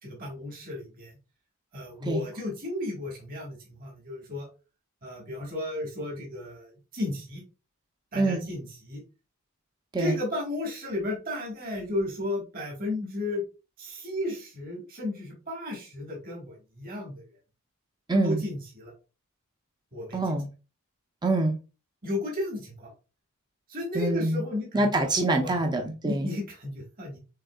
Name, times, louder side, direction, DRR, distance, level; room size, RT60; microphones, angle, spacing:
voice 1, 0.0-1.2 1.7-4.5 5.0-7.4 8.1-9.0 10.0-13.4 13.8-17.3 18.2-18.9 19.9-20.4 22.0-22.9 23.7-25.1 25.4-25.6 26.0-27.2, left 2 dB, 40° right, 1.8 m, -34 dB
voice 2, 18.1-18.4 20.1-20.5 21.2-21.5 23.9-24.4 24.7-26.3, right 2 dB, 20° right, 0.7 m, -25 dB
6.6 x 3.4 x 2.4 m
head